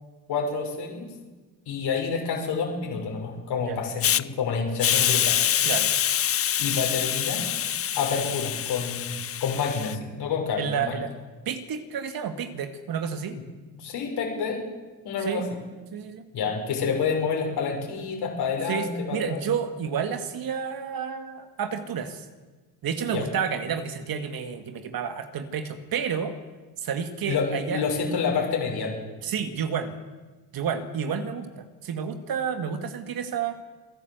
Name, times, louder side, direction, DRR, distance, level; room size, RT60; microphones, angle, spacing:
voice 1, 0.3-1.1 1.7-5.4 6.6-7.4 7.9-11.0 13.7-14.7 15.0-15.4 16.3-19.5 23.1-23.2 27.2-29.0, left 5 dB, 70° left, 1 dB, 6.3 m, -28 dB
Hiss, 4.0-4.2 4.8-9.9, left 10 dB, 35° left, 0.6 m, -25 dB
voice 2, 10.6-11.1 11.5-13.4 15.2-15.4 15.9-16.2 18.7-22.2 22.8-26.3 26.8-27.8 29.2-29.9 30.5-33.6, right 7 dB, 60° right, 8 dB, 2.3 m, -30 dB
28.0 x 11.5 x 8.1 m, 1.3 s
supercardioid pair, 80°, 41 cm